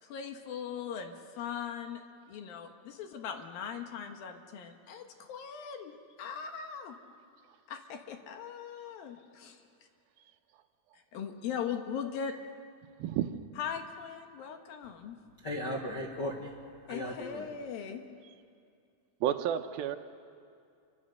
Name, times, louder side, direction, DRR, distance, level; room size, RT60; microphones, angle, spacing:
voice 1, 0.0-2.0 2.3-7.0 7.7-9.6 11.1-12.3 13.6-15.2 16.9-18.1, left 7 dB, 70° left, 5 dB, 3.0 m, -39 dB
voice 2, 13.0-13.3 19.2-20.0, right 10 dB, 80° right, 8 dB, 2.6 m, -30 dB
voice 3, 15.4-16.5 16.9-17.4, left 1 dB, 50° left, -1 dB, 1.3 m, -36 dB
26.5 x 25.0 x 6.6 m, 2.4 s
omnidirectional pair, 4.4 m